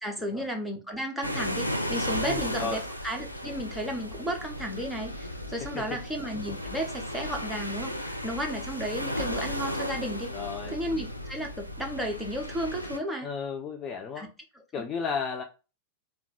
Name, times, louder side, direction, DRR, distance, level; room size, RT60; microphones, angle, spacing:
voice 1, 0.0-10.3 10.7-13.3 14.2-14.3 14.5-14.8, equal, ahead, 0.9 m, -33 dB
sound 1, 1.2-13.0, left 1 dB, 90° left, 0.5 m, -35 dB
voice 2, 2.2-2.8 10.3-10.7 13.2-14.3 14.7-15.4, left 5 dB, 25° left, 0.5 m, -34 dB
3.7 x 2.4 x 4.3 m
figure-of-eight pair, 90°, 0 cm